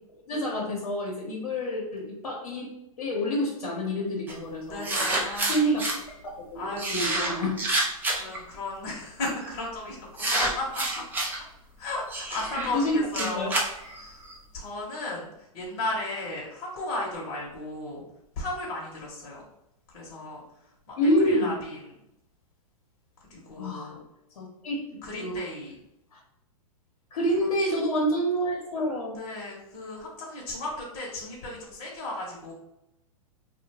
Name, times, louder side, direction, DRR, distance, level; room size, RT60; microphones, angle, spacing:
voice 1, 0.3-2.7 3.0-5.1 5.5-5.9 6.4-7.6 9.2-9.3 12.3-13.5 21.0-21.6 23.6-23.9 24.4-25.4 26.1-26.2 27.1-29.2, equal, 85° left, -4 dB, 0.8 m, -28 dB
sound 1, 4.3-4.4 4.8-6.0 6.8-8.4 9.2-9.5 10.2-11.4 12.1-14.3, right 2 dB, 10° right, 0.4 m, -28 dB
voice 2, 4.6-5.7 6.5-7.5 8.1-11.0 11.8-13.5 13.9-14.2 14.5-15.3 15.5-18.0 18.4-19.4 19.9-20.4 20.9-21.9 23.3-24.0 25.0-25.7 29.1-32.5, left 2 dB, 45° left, -3 dB, 0.8 m, -35 dB
2.7 x 2.1 x 2.8 m, 0.83 s
hypercardioid pair, 130°, 19 cm